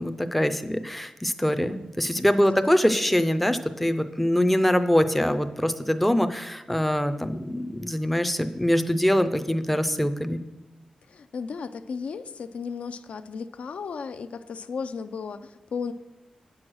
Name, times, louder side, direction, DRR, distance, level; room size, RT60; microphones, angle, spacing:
voice 1, 0.0-10.4, equal, 5° left, 9 dB, 0.4 m, -24 dB
voice 2, 11.1-15.9, left 5 dB, 75° left, 11 dB, 0.4 m, -35 dB
9.4 x 6.3 x 6.2 m, 1.0 s
wide cardioid pair, 180°, 2 cm